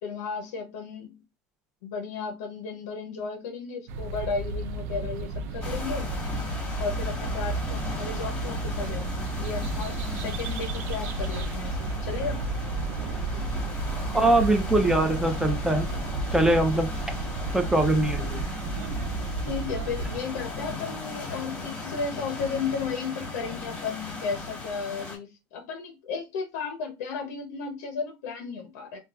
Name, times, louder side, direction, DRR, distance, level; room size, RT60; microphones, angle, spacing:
voice 1, 0.0-1.2 1.8-6.1 6.8-12.4 14.1-14.2 19.4-29.0, left 5 dB, 80° left, 0.6 m, -34 dB
sound 1, 3.9-20.2, right 3 dB, 80° right, 0.4 m, -32 dB
sound 2, 5.6-25.2, left 3 dB, 15° left, 1.1 m, -37 dB
voice 2, 14.1-15.9 16.3-16.9 17.5-18.4, right 1 dB, 5° right, 0.5 m, -22 dB
3.2 x 2.3 x 2.3 m
supercardioid pair, 115°, 8 cm